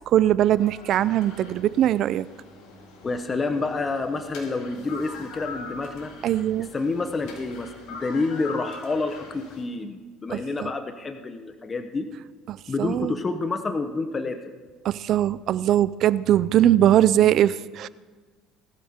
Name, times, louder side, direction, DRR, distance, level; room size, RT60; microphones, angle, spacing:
voice 1, 0.1-2.3 6.2-6.7 10.3-10.7 12.5-13.1 14.8-17.9, right 12 dB, 55° right, 18 dB, 0.4 m, -21 dB
sound 1, 0.6-9.6, left 4 dB, 75° left, 3.7 m, -43 dB
voice 2, 3.0-6.1 6.7-12.1 12.7-14.5, left 3 dB, 25° left, 7 dB, 1.0 m, -28 dB
19.5 x 13.0 x 3.7 m, 1.4 s
cardioid pair, 120°, 0 cm